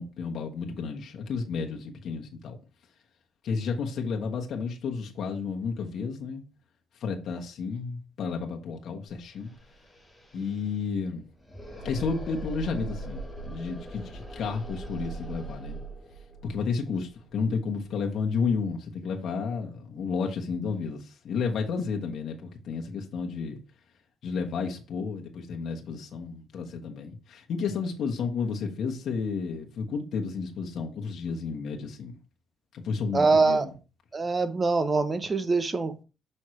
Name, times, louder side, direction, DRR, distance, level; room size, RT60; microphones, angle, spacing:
voice 1, 0.0-2.6 3.4-6.4 7.0-9.5 10.3-11.2 11.8-15.8 16.4-23.6 24.2-32.1 32.7-33.7, left 5 dB, 60° left, 1.2 m, -32 dB
sound 1, 9.4-18.2, right 2 dB, 5° left, 2.9 m, -41 dB
voice 2, 33.1-33.7 34.1-36.0, right 3 dB, 25° right, 0.8 m, -24 dB
6.1 x 5.5 x 3.2 m
cardioid pair, 100°, 0 cm